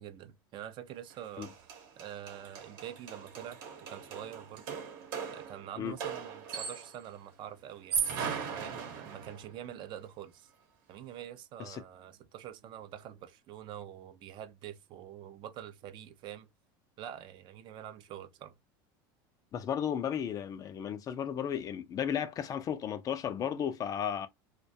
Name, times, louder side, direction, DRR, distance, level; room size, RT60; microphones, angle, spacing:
voice 1, 0.0-1.5 2.0-3.6 3.9-4.8 5.3-8.0 8.5-10.5 10.9-16.5 17.0-18.5, right 11 dB, 45° right, 0.4 m, -46 dB
sound 1, 1.1-1.2 1.4-7.1 7.7-9.5, right 7 dB, 75° right, 0.9 m, -38 dB
voice 2, 19.5-24.3, left 8 dB, 30° left, 0.3 m, -34 dB
2.2 x 2.2 x 2.5 m
supercardioid pair, 120°, 11 cm